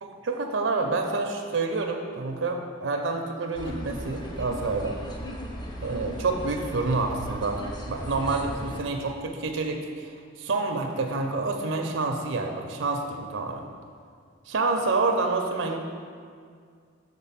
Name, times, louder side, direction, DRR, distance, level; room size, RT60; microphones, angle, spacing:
voice 1, 0.0-5.0 5.8-7.6 7.9-13.6 14.5-15.8, right 3 dB, 70° right, 4 dB, 0.5 m, -28 dB
sound 1, 3.6-8.8, equal, 20° left, 0.6 m, -37 dB
6.7 x 3.8 x 5.6 m, 2.1 s
head